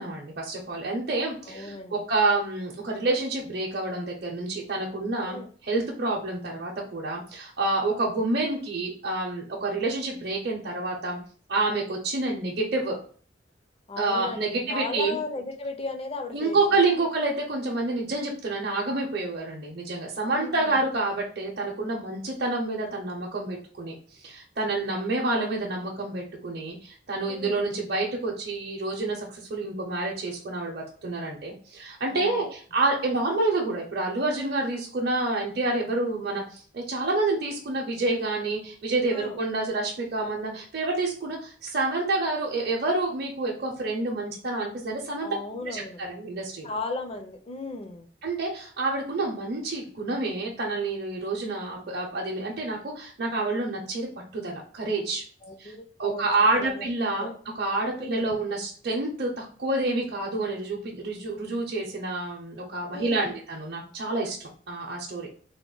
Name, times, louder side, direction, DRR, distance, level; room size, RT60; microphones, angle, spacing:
voice 1, 0.0-11.2 11.5-12.9 14.0-15.2 16.3-45.3 45.7-46.7 48.2-54.1 54.3-55.2 55.6-55.7 56.0-57.3 57.6-65.3, right 2 dB, 60° right, -2 dB, 0.6 m, -28 dB
voice 2, 1.4-2.0 5.3-5.5 13.9-16.8 20.3-20.8 27.3-27.6 32.1-32.5 39.1-39.4 45.2-46.0 46.6-48.1 55.4-56.9 57.2-57.4 58.0-58.3 62.9-63.3, left 3 dB, 30° left, 6 dB, 0.5 m, -36 dB
3.4 x 2.1 x 3.8 m, 0.44 s
head